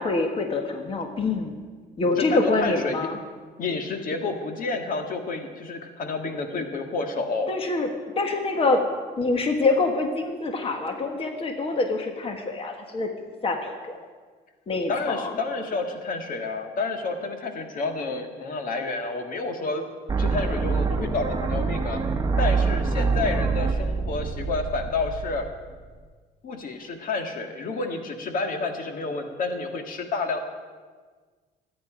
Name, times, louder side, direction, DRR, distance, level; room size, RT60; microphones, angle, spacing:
voice 1, 0.0-1.5 2.0-3.2 7.5-7.9 8.1-8.8 9.2-13.1 13.4-14.0 14.7-15.4, left 3 dB, 35° left, 4 dB, 1.6 m, -25 dB
voice 2, 2.2-3.1 3.6-7.5 14.9-19.8 20.2-22.0 22.4-25.4 26.4-30.4, left 3 dB, 55° left, 5 dB, 1.8 m, -29 dB
sound 1, 20.1-26.1, right 4 dB, 20° right, 1.3 m, -26 dB
24.5 x 9.6 x 5.0 m, 1.5 s
cardioid pair, 110°, 17 cm